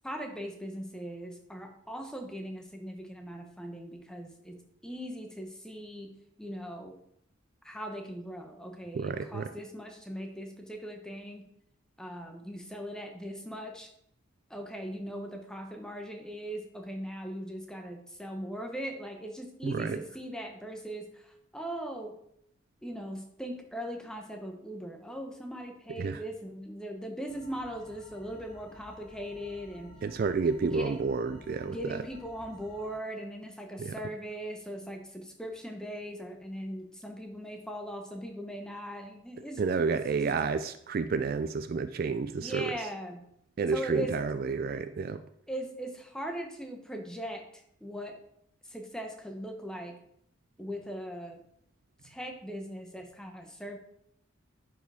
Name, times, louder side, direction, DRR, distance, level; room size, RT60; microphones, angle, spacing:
voice 1, 0.0-6.1 6.4-7.0 7.6-11.5 12.0-13.9 14.5-22.1 22.8-29.9 30.6-31.0 31.6-40.5 42.3-43.2 43.7-44.2 45.5-48.2 48.6-50.0 50.6-51.4 52.0-53.8, equal, 5° left, 3 dB, 0.9 m, -40 dB
voice 2, 8.9-9.5 19.6-20.0 26.0-26.2 30.0-32.0 33.8-33.9 39.6-42.7 43.6-45.2, right 4 dB, 45° right, 11 dB, 0.3 m, -30 dB
sound 1, 27.3-33.0, left 1 dB, 35° left, 3.3 m, -53 dB
10.5 x 4.8 x 3.5 m, 0.72 s
head